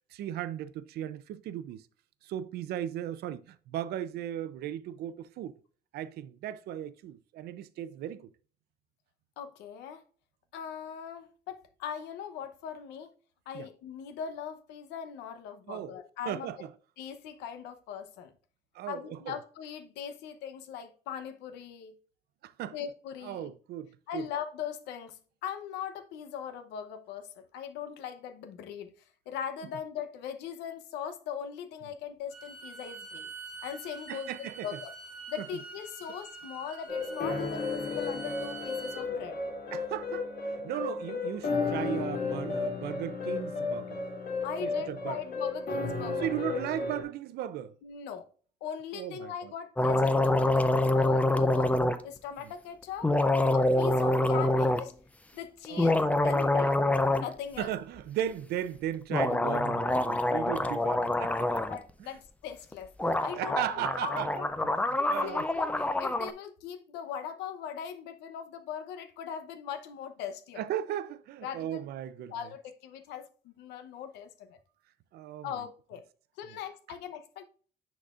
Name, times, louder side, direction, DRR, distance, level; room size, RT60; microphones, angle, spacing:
voice 1, 0.1-1.8 2.2-5.5 5.9-8.3 13.5-13.7 15.7-16.0 16.3-16.7 18.7-19.4 22.4-22.7 23.2-24.3 34.1-34.8 35.4-35.5 39.7-44.0 44.6-45.2 46.2-47.7 48.9-49.5 52.4-52.5 55.7-56.2 57.6-61.7 62.0-62.1 63.3-64.5 65.1-65.5 70.6-72.3 75.1-75.5, right 11 dB, 70° right, 0.5 m, -36 dB
voice 2, 9.4-10.0 10.5-13.1 13.5-16.5 17.0-18.3 18.9-21.9 22.7-23.5 24.1-28.9 29.3-33.3 33.6-34.9 35.3-39.4 44.4-46.6 47.8-48.3 48.6-51.7 52.0-53.1 53.5-55.0 55.3-56.8 57.2-57.7 61.7-64.5 64.8-70.6 71.4-71.9 72.3-74.6 75.4-76.0 76.4-77.4, left 8 dB, 90° left, 0.8 m, -40 dB
Bowed string instrument, 32.3-39.1, right 3 dB, 10° right, 2.8 m, -45 dB
sound 1, 36.9-47.0, left 4 dB, 60° left, 2.5 m, -33 dB
sound 2, 49.8-52.0 53.0-54.8 55.6-57.3 57.6-57.7 59.1-61.8 62.7-62.8 63.0-66.3, left 2 dB, 10° left, 0.5 m, -26 dB
9.9 x 4.1 x 2.4 m
cardioid pair, 110°, 17 cm